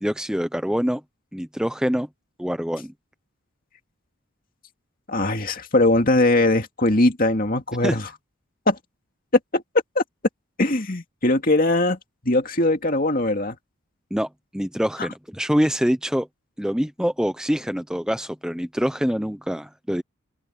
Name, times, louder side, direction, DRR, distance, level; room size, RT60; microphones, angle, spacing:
voice 1, 0.0-1.0 1.3-2.1 2.4-2.9 7.8-8.0 14.1-14.3 14.5-16.3 16.6-20.0, equal, 5° right, 0.7 m, -25 dB
voice 2, 5.1-8.1 8.7-8.8 9.5-9.6 10.0-10.1 10.6-12.0 12.2-13.6 15.0-15.1, left 2 dB, 40° left, 2.4 m, -20 dB
open air
head